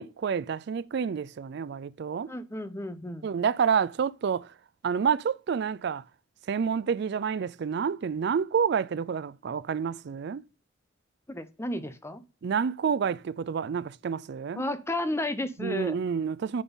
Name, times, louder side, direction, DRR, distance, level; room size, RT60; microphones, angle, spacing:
voice 1, 0.0-2.3 3.2-4.5 4.8-6.0 6.5-10.4 12.4-14.6 15.6-16.6, right 6 dB, 65° right, 0.4 m, -28 dB
voice 2, 2.3-3.2 11.3-12.2 14.6-16.0, left 1 dB, 15° left, 0.7 m, -32 dB
9.3 x 3.7 x 4.0 m
head